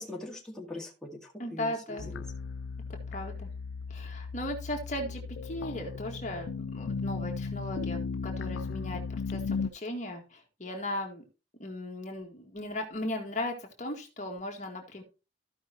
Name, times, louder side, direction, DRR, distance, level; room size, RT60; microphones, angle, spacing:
voice 1, 0.0-2.2, left 2 dB, 5° left, -2 dB, 2.0 m, -42 dB
voice 2, 1.4-2.2 2.9-3.5 3.9-11.2 11.6-15.0, left 1 dB, 40° left, 1 dB, 1.9 m, -37 dB
sound 1, 2.0-9.7, left 4 dB, 85° left, 0.4 m, -36 dB
15.0 x 5.6 x 2.9 m, 0.31 s
head